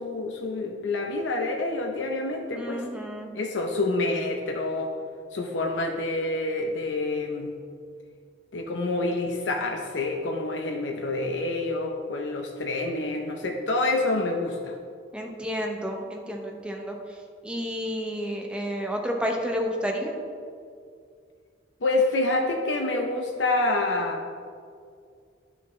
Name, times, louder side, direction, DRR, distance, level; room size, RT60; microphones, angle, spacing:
voice 1, 0.0-2.8 3.3-4.9 5.3-7.5 8.5-14.7 21.8-24.2, left 2 dB, 80° left, 2 dB, 0.6 m, -27 dB
voice 2, 2.5-3.3 15.1-16.9 17.4-20.1, equal, 5° right, 1 dB, 0.8 m, -30 dB
9.9 x 6.2 x 3.2 m, 2.2 s
head